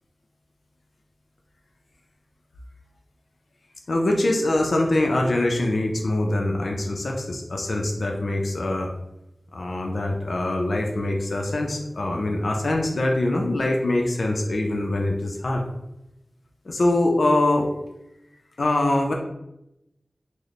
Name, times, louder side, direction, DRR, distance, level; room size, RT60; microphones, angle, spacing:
voice 1, 3.9-8.9 9.5-15.6 16.7-17.7 18.6-19.1, left 1 dB, 85° left, 1 dB, 0.5 m, -23 dB
3.9 x 2.1 x 3.1 m, 0.88 s
wide cardioid pair, 45°, 0 cm